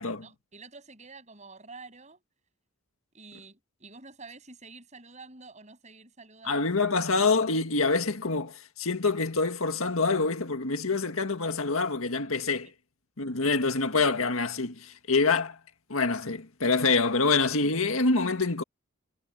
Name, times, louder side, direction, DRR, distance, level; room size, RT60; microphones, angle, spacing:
voice 1, 0.2-2.2 3.1-6.7 13.4-13.5, right 3 dB, 35° right, 7.7 m, -49 dB
voice 2, 6.4-12.7 13.2-15.6 15.9-18.6, left 3 dB, 80° left, 1.9 m, -26 dB
head